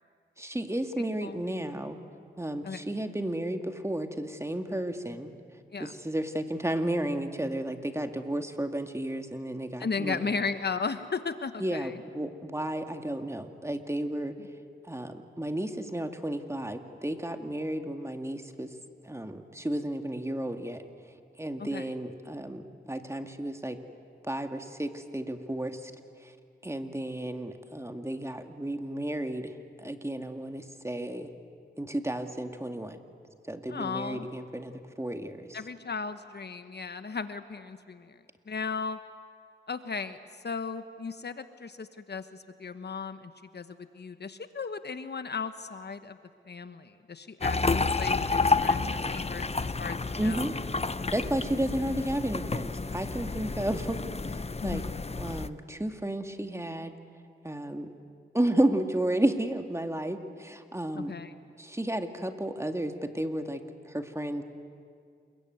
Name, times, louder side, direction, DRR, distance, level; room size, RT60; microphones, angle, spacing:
voice 1, 0.4-2.0 2.4-5.3 5.8-10.3 11.6-14.3 14.9-18.7 19.0-20.8 21.4-23.8 24.2-25.9 26.2-26.3 26.6-29.5 29.8-31.3 31.8-33.0 33.5-35.6 50.2-50.5 51.1-54.0 54.3-54.8 55.2-56.9 57.4-57.9 58.3-61.1 61.6-64.4, right 1 dB, 15° right, 6 dB, 2.2 m, -32 dB
voice 2, 1.0-1.4 2.6-2.8 5.7-5.9 9.8-11.9 21.6-21.8 33.7-34.3 35.5-38.2 38.5-39.0 39.7-40.2 40.4-46.2 46.5-50.5 54.6-54.9 60.9-61.3, left 5 dB, 55° left, 10 dB, 1.2 m, -36 dB
sound 1, 47.4-55.5, left 3 dB, 30° left, 0.9 m, -30 dB
28.0 x 22.0 x 9.4 m, 2.3 s
cardioid pair, 55°, 21 cm